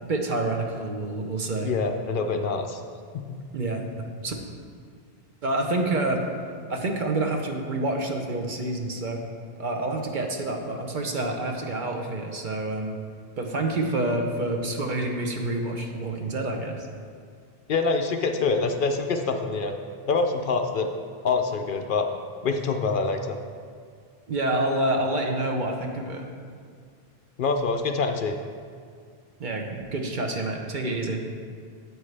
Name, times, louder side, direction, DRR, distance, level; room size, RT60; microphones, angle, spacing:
voice 1, 0.0-1.7 3.5-4.4 5.4-6.2 6.7-9.2 9.6-13.0 13.4-16.9 24.3-26.2 29.4-31.2, right 2 dB, 55° right, 2 dB, 0.9 m, -28 dB
voice 2, 1.6-2.8 3.1-3.2 17.7-19.8 20.1-20.9 21.2-22.1 22.4-23.4 27.4-28.4, left 4 dB, 60° left, 5 dB, 0.7 m, -25 dB
9.0 x 8.2 x 3.3 m, 2.2 s
omnidirectional pair, 1.0 m